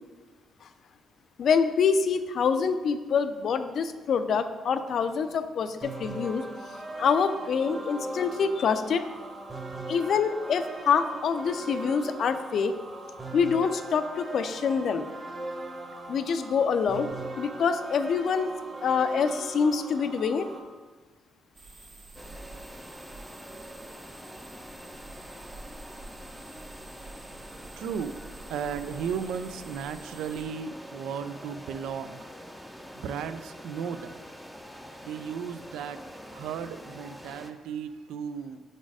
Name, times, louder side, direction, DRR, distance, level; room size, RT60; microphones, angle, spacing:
voice 1, 1.4-6.4 7.0-9.0 9.9-12.7 13.3-15.1 16.1-17.1 17.4-18.5 18.8-20.5, left 6 dB, 60° left, 10 dB, 0.4 m, -26 dB
sound 1, 5.8-20.6, right 2 dB, 20° right, 1.1 m, -39 dB
sound 2, 21.5-30.4, right 2 dB, 45° right, 1.0 m, -48 dB
sound 3, 22.1-37.5, equal, 5° right, 0.5 m, -45 dB
voice 2, 27.8-28.2 28.5-32.3 32.9-34.2 35.0-36.0 36.3-38.6, right 7 dB, 85° right, 11 dB, 0.3 m, -35 dB
5.0 x 4.1 x 4.8 m, 1.3 s
cardioid pair, 90°, 0 cm